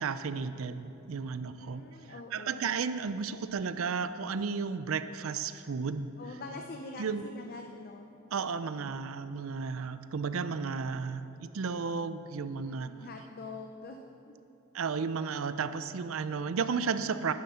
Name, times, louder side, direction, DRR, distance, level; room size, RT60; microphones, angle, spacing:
voice 1, 0.0-1.8 2.3-6.1 7.0-7.3 8.3-12.9 14.7-17.3, right 5 dB, 75° right, 12 dB, 0.5 m, -33 dB
voice 2, 1.6-2.7 6.2-8.1 12.6-14.0 14.3-14.5, left 3 dB, 45° left, 4 dB, 0.6 m, -45 dB
10.5 x 10.5 x 5.7 m, 2.9 s
head